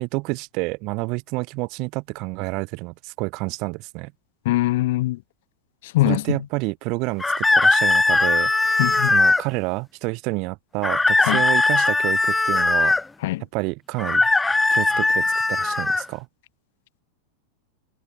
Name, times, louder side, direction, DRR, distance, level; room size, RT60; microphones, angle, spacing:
voice 1, 0.0-4.1 6.0-8.5 9.1-13.0 13.5-14.3 14.7-16.3, right 27 dB, 40° right, 3.4 m, -28 dB
voice 2, 4.4-5.2 5.9-6.2 8.8-9.1 11.3-11.4 13.2-13.4, left 17 dB, 55° left, 1.3 m, -21 dB
sound 1, 7.2-9.4 10.8-13.0 14.0-16.0, left 2 dB, 10° left, 1.7 m, -19 dB
figure-of-eight pair, 90°, 0 cm